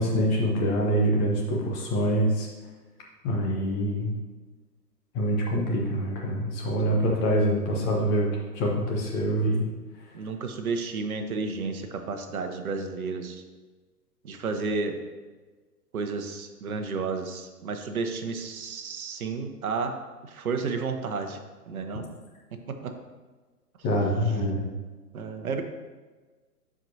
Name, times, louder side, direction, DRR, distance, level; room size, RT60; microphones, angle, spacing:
voice 1, 0.0-2.5 3.2-4.1 5.1-8.3 8.5-9.7 23.8-24.6, equal, 15° left, -2 dB, 0.8 m, -25 dB
voice 2, 10.1-13.4 14.2-15.0 15.9-20.0 20.2-21.4 21.7-22.1 22.7-22.9 25.1-25.6, right 4 dB, 60° right, 6 dB, 1.1 m, -32 dB
11.5 x 4.9 x 2.7 m, 1.3 s
figure-of-eight pair, 130°, 48 cm